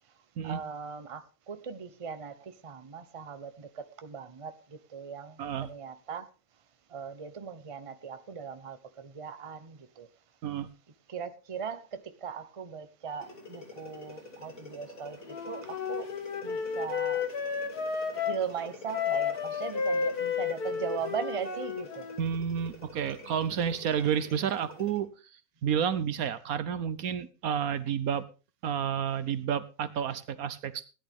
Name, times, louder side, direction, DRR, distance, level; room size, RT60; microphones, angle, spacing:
voice 1, 0.4-6.3 6.9-10.1 11.1-16.1 16.4-17.3 18.2-22.0 27.2-27.3, right 6 dB, 25° right, 0.8 m, -39 dB
voice 2, 5.4-5.7 10.4-10.7 22.2-28.3 28.6-30.9, right 8 dB, 70° right, 1.2 m, -30 dB
sound 1, 13.2-25.0, left 3 dB, 50° left, 3.4 m, -48 dB
Wind instrument woodwind instrument, 15.3-18.4 18.9-22.2, left 6 dB, 80° left, 2.0 m, -32 dB
16.5 x 11.0 x 3.6 m
omnidirectional pair, 1.6 m